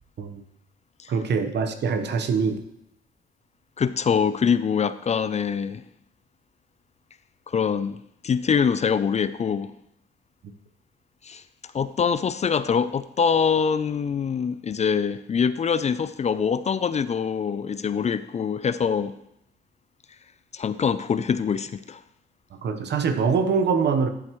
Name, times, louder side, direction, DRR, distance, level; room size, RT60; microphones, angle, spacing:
voice 1, 1.1-2.6 22.6-24.1, right 5 dB, 60° right, 1.1 m, -23 dB
voice 2, 3.8-5.8 7.5-8.0 8.2-9.7 11.2-11.4 11.7-19.1 20.5-22.0, left 6 dB, 35° left, 0.4 m, -24 dB
13.0 x 7.6 x 3.1 m
cardioid pair, 90°, 20 cm